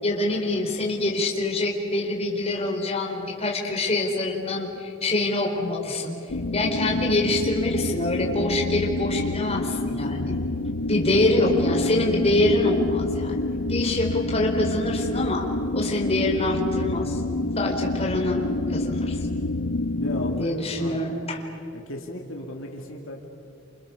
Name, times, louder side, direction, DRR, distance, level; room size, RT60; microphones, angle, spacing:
voice 1, 0.0-6.2 6.5-10.4 10.9-13.4 13.7-15.5 15.7-17.2 17.6-19.2 20.4-21.4, left 2 dB, 30° left, -1 dB, 4.2 m, -25 dB
sound 1, 6.3-20.4, left 2 dB, 80° left, 0.9 m, -27 dB
voice 2, 11.3-11.7 20.0-21.0 21.7-23.3, left 1 dB, 65° left, 1 dB, 2.4 m, -36 dB
29.5 x 28.0 x 7.1 m, 2.7 s
head